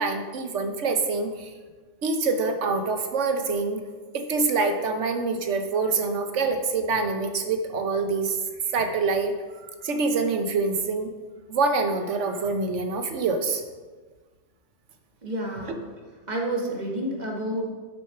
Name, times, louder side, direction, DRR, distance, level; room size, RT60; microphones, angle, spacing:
voice 1, 0.0-1.5 2.0-3.8 4.1-8.4 8.7-9.3 9.8-11.1 11.5-13.6, right 4 dB, 75° right, 7 dB, 1.2 m, -25 dB
voice 2, 15.2-15.9 16.3-17.7, right 1 dB, 35° right, 0 dB, 1.6 m, -29 dB
7.5 x 6.4 x 5.8 m, 1.4 s
omnidirectional pair, 1.3 m